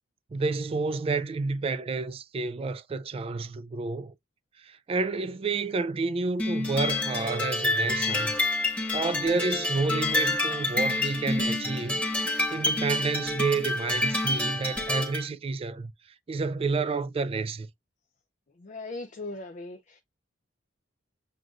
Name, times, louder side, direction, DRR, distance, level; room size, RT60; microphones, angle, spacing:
voice 1, 0.3-4.1 4.6-8.3 8.9-12.0 12.5-15.9 16.3-17.7, right 4 dB, 30° right, 0.3 m, -30 dB
sound 1, 6.4-15.3, left 2 dB, 5° left, 1.2 m, -28 dB
voice 2, 18.6-20.0, left 2 dB, 40° left, 0.5 m, -39 dB
7.6 x 2.5 x 2.4 m
head